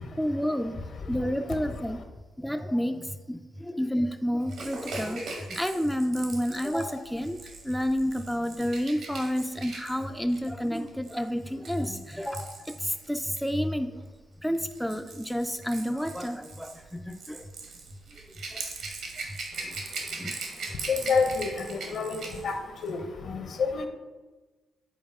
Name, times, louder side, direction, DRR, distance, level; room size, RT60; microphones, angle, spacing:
voice 1, 0.2-2.0 2.4-7.4 7.6-14.0 14.4-17.4 18.5-18.6 19.3-19.4 19.6-19.8 20.2-20.4, equal, ahead, 6 dB, 0.3 m, -30 dB
Rattle / Rattle (instrument), 4.5-13.5 14.4-22.5 22.8-23.0, right 3 dB, 70° right, 1.1 m, -41 dB
voice 2, 20.9-22.2 22.4-22.5 22.8-23.0 23.3-23.9, left 5 dB, 60° left, 5 dB, 0.8 m, -27 dB
7.3 x 4.2 x 3.5 m, 1.2 s
cardioid pair, 90°, 0 cm